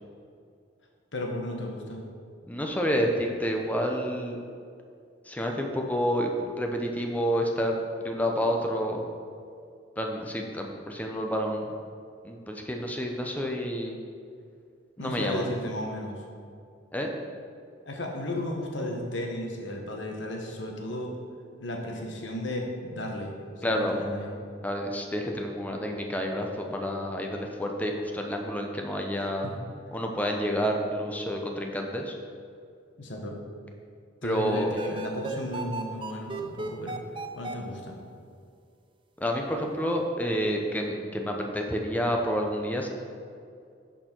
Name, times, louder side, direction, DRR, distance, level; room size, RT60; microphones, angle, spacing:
voice 1, 1.1-2.0 15.0-16.2 17.9-21.1 21.6-23.3 23.7-24.3 29.4-29.5 29.9-30.0 33.0-33.4 34.2-37.0 37.4-38.0, left 1 dB, 70° left, 1 dB, 1.2 m, -34 dB
voice 2, 2.5-4.4 5.3-6.3 6.6-9.0 10.0-11.7 12.2-14.0 15.0-15.5 16.9-17.1 23.6-24.0 24.6-29.5 29.9-32.2 34.2-34.7 39.2-42.9, equal, 10° left, 2 dB, 0.7 m, -29 dB
sound 1, 34.7-37.5, right 3 dB, 25° right, 0.5 m, -35 dB
11.0 x 4.5 x 4.5 m, 2.3 s
head